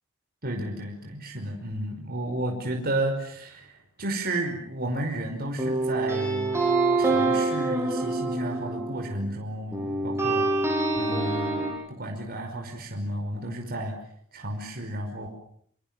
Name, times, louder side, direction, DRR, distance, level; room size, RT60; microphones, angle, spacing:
voice 1, 0.4-6.6 7.0-10.5 11.0-11.6 11.9-13.9 14.3-15.3, right 1 dB, 45° right, 2 dB, 5.3 m, -32 dB
sound 1, 5.6-9.3 9.7-11.7, right 2 dB, 10° right, 7.7 m, -26 dB
27.5 x 27.0 x 7.6 m, 0.64 s
head